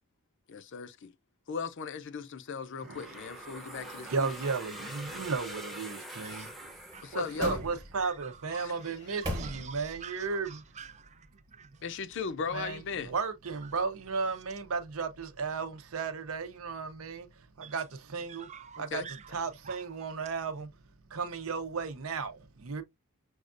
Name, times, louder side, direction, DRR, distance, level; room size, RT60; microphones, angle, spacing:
voice 1, 0.7-1.1 1.5-4.3 7.0-7.6 8.6-8.7 11.8-13.1 18.9-19.1, left 5 dB, 60° left, 0.5 m, -37 dB
sound 1, 2.8-7.7, right 1 dB, ahead, 0.7 m, -44 dB
voice 2, 2.8-6.5 7.1-10.6 12.5-18.5 18.8-19.0 19.3-20.7 21.1-22.8, right 5 dB, 80° right, 0.7 m, -35 dB
voice 3, 6.2-6.5 6.9-7.2 8.0-11.8 13.6-13.7 17.6-17.8 18.3-19.3 19.6-19.9, right 7 dB, 35° right, 0.5 m, -49 dB
sound 2, 6.6-8.2 8.8-10.1 10.4-10.5, equal, 20° right, 1.0 m, -40 dB
6.2 x 2.4 x 2.5 m
head